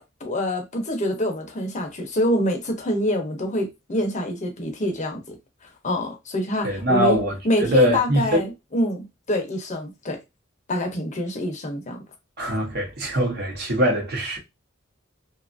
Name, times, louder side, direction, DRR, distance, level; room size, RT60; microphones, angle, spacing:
voice 1, 0.2-5.4 5.8-7.2 7.4-10.2 10.7-12.0, left 1 dB, 35° left, 0.6 m, -26 dB
voice 2, 6.6-7.3 7.6-8.4 12.4-14.4, equal, 55° right, 0.9 m, -22 dB
2.7 x 2.3 x 2.5 m
head